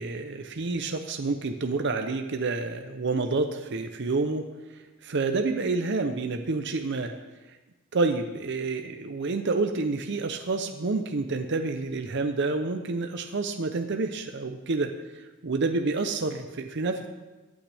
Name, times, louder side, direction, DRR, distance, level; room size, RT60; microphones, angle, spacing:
voice 1, 0.0-4.5 5.0-7.1 7.9-14.9 15.4-17.1, right 3 dB, 60° right, 6 dB, 0.7 m, -28 dB
23.0 x 8.9 x 3.4 m, 1.2 s
head